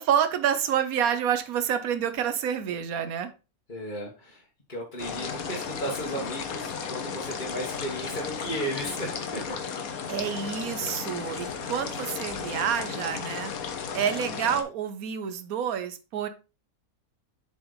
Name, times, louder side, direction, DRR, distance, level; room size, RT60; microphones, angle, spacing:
voice 1, 0.0-3.3 10.1-13.5 13.9-16.3, right 8 dB, 75° right, 1.3 m, -28 dB
voice 2, 3.7-9.6, equal, 35° left, 1.7 m, -35 dB
sound 1, 5.0-14.6, left 6 dB, 70° left, 1.5 m, -34 dB
7.4 x 5.3 x 4.0 m
omnidirectional pair, 1.6 m